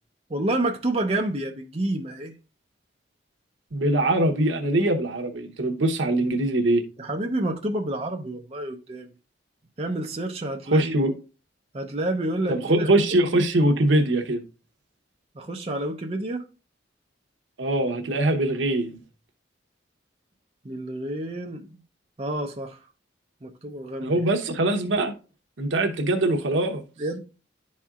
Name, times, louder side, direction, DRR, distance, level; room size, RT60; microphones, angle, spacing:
voice 1, 0.3-2.3 7.0-9.1 9.8-10.9 11.7-12.9 15.4-16.4 20.6-21.8 22.2-22.8 23.4-24.2 27.0-27.2, right 1 dB, 30° right, 0.6 m, -29 dB
voice 2, 3.7-6.8 10.7-11.1 12.5-14.4 17.6-19.0 24.0-25.1 25.6-26.8, right 1 dB, 85° right, 0.9 m, -22 dB
11.0 x 4.3 x 2.4 m
head